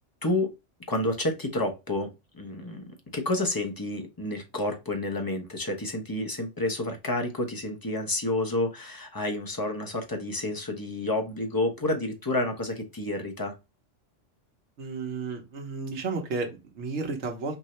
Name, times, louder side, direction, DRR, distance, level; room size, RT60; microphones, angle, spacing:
voice 1, 0.2-0.5 0.9-2.8 3.1-13.5, left 2 dB, 20° left, 4 dB, 0.8 m, -29 dB
voice 2, 14.8-17.6, right 4 dB, 65° right, 1 dB, 1.3 m, -32 dB
4.5 x 2.7 x 3.1 m, 0.25 s
omnidirectional pair, 1.3 m